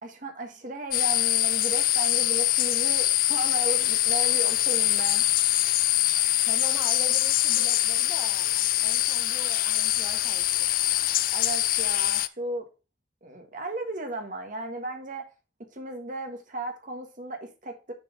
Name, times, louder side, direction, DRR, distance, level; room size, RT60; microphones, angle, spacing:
voice 1, 0.0-5.2 11.3-12.7 13.2-15.3 15.7-17.9, right 2 dB, 45° right, 1.5 m, -35 dB
sound 1, 0.9-12.3, left 15 dB, 50° left, 0.3 m, -24 dB
voice 2, 6.5-10.7, right 1 dB, 20° right, 0.9 m, -43 dB
6.8 x 4.7 x 4.8 m
head